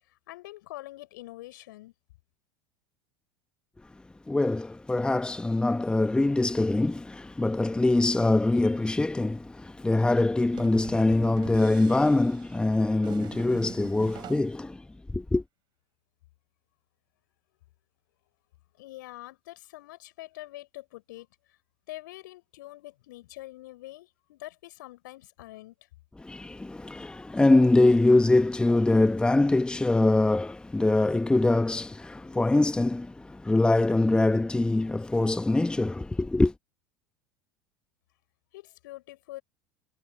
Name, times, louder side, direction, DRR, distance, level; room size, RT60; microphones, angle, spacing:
voice 1, 0.3-1.9 18.8-21.3 21.9-25.7 38.5-39.4, left 17 dB, 60° left, 5.7 m, -44 dB
voice 2, 4.3-14.8 15.1-15.4 26.2-36.5, left 2 dB, 10° left, 1.4 m, -23 dB
sound 1, 10.5-14.6, right 13 dB, 40° right, 4.0 m, -45 dB
figure-of-eight pair, 75°, 12 cm